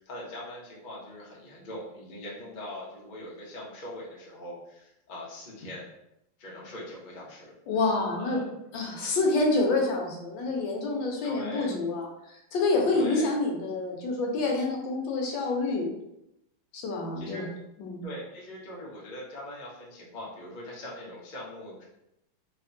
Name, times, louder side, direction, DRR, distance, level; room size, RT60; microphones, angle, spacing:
voice 1, 0.0-5.8 6.4-7.5 8.1-8.5 11.2-11.7 12.9-13.3 17.2-17.5 18.0-21.8, left 1 dB, 50° left, -5 dB, 0.6 m, -41 dB
voice 2, 7.7-8.4 8.7-15.9 16.7-17.5 17.8-18.0, left 3 dB, 75° left, 0 dB, 1.4 m, -27 dB
3.3 x 2.8 x 2.6 m, 0.84 s
omnidirectional pair, 2.1 m